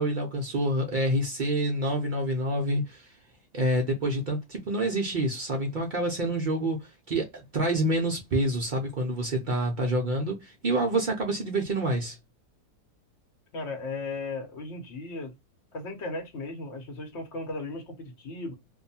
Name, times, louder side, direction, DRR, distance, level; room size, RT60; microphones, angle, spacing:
voice 1, 0.0-3.1 3.5-12.2, right 1 dB, 80° right, 0.4 m, -27 dB
voice 2, 13.5-15.3 15.7-18.5, left 3 dB, 50° left, 1.0 m, -36 dB
2.6 x 2.3 x 2.6 m
omnidirectional pair, 1.7 m